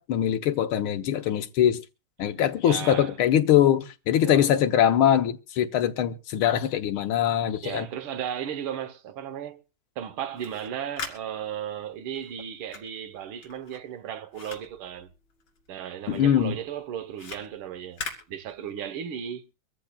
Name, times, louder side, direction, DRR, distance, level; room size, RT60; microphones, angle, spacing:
voice 1, 0.0-1.8 2.2-7.9 16.1-16.6, left 10 dB, 80° left, 1.8 m, -22 dB
voice 2, 2.6-3.1 4.2-4.5 7.6-9.6 10.0-15.1 15.7-19.4, right 9 dB, 85° right, 1.8 m, -35 dB
sound 1, 10.2-15.8 16.1-19.0, left 5 dB, 65° left, 3.4 m, -42 dB
24.5 x 13.5 x 2.3 m
omnidirectional pair, 2.3 m